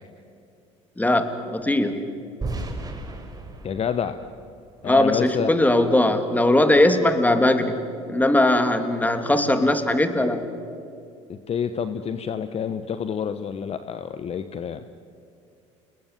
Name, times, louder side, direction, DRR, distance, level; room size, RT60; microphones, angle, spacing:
voice 1, 1.0-2.0 4.8-7.8 8.1-10.4, left 1 dB, 10° left, 8 dB, 3.0 m, -20 dB
sound 1, 2.4-5.4, right 2 dB, 25° right, 4.9 m, -35 dB
voice 2, 3.6-4.2 4.8-5.5 11.3-14.8, left 7 dB, 40° left, 11 dB, 1.1 m, -28 dB
30.0 x 20.5 x 9.2 m, 2.4 s
hypercardioid pair, 70°, 15 cm